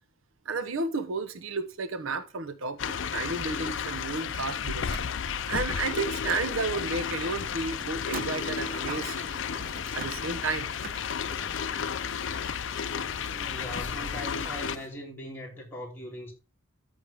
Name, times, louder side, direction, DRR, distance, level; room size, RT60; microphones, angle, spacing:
voice 1, 0.5-4.9 5.5-9.2 9.9-10.7, right 4 dB, 80° right, 0.9 m, -32 dB
sound 1, 2.8-14.8, left 7 dB, 60° left, 0.5 m, -33 dB
Car, 4.9-5.7 5.9-11.0, right 5 dB, 45° right, 0.6 m, -45 dB
sound 2, 8.2-14.9, equal, 15° right, 2.2 m, -48 dB
voice 2, 13.3-16.3, equal, 10° left, 2.8 m, -40 dB
13.5 x 5.4 x 3.5 m
head